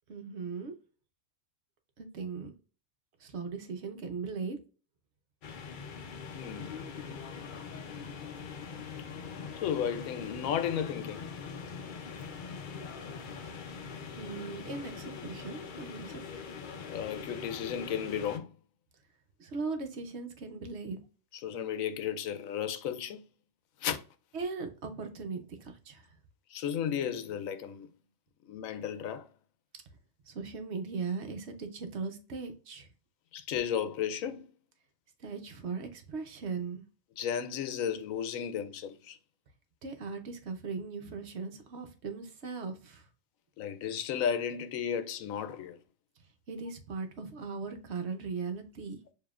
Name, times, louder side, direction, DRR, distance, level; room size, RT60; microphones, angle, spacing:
voice 1, 0.1-0.7 2.0-2.5 3.2-4.6 14.2-16.2 19.4-21.0 24.3-26.2 30.3-32.9 35.2-36.8 39.8-43.1 46.5-49.0, right 4 dB, 60° right, 1.0 m, -38 dB
sound 1, 5.4-18.4, left 5 dB, 50° left, 0.6 m, -42 dB
voice 2, 6.3-6.8 9.6-11.2 16.9-18.5 21.4-23.2 23.8-24.0 26.5-27.9 28.4-29.3 33.3-34.5 37.2-39.2 43.6-45.8, left 8 dB, 85° left, 1.0 m, -34 dB
6.8 x 2.8 x 2.4 m
omnidirectional pair, 1.4 m